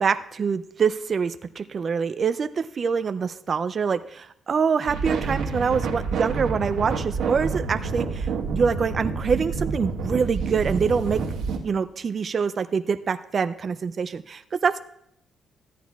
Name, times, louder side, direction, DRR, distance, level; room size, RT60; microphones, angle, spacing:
voice 1, 0.0-11.2 11.6-14.9, right 6 dB, 45° right, 10 dB, 0.4 m, -25 dB
sound 1, 4.8-11.6, right 4 dB, 85° right, 1.3 m, -28 dB
14.0 x 9.2 x 2.3 m, 0.75 s
cardioid pair, 90°, 0 cm